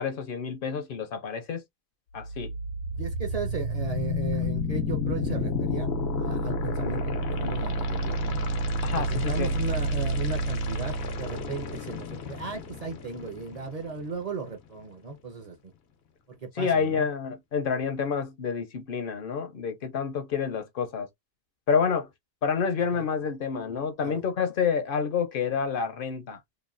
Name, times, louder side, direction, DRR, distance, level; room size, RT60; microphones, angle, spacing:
voice 1, 0.0-1.6 2.1-2.5 8.8-9.5 16.6-21.1 21.7-22.1 22.4-26.4, left 6 dB, 65° left, 0.7 m, -28 dB
sound 1, 2.2-14.2, equal, 90° left, 0.9 m, -30 dB
voice 2, 2.9-5.9 6.2-8.4 9.0-15.7 16.3-17.1 22.9-23.1 24.0-24.2, right 3 dB, 45° right, 0.6 m, -36 dB
3.0 x 2.2 x 2.4 m
omnidirectional pair, 1.1 m